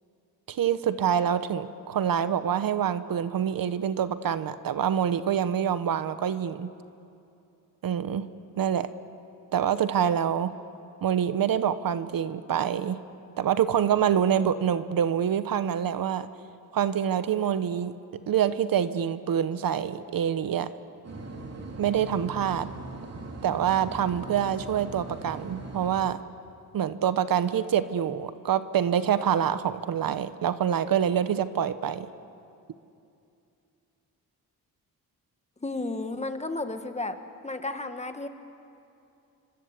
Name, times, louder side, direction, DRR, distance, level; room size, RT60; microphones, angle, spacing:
voice 1, 0.5-6.7 7.8-8.3 8.6-8.9 9.5-10.6 11.0-13.0 13.4-16.3 16.7-17.9 18.3-20.7 21.8-22.7 23.4-26.2 26.7-32.1, right 9 dB, 65° right, 13 dB, 1.0 m, -26 dB
sound 1, 21.0-26.1, right 2 dB, 45° right, 3.3 m, -40 dB
voice 2, 35.6-37.1 37.4-38.3, left 2 dB, 20° left, 7 dB, 1.7 m, -32 dB
27.0 x 25.0 x 8.2 m, 2.6 s
cardioid pair, 95°, 37 cm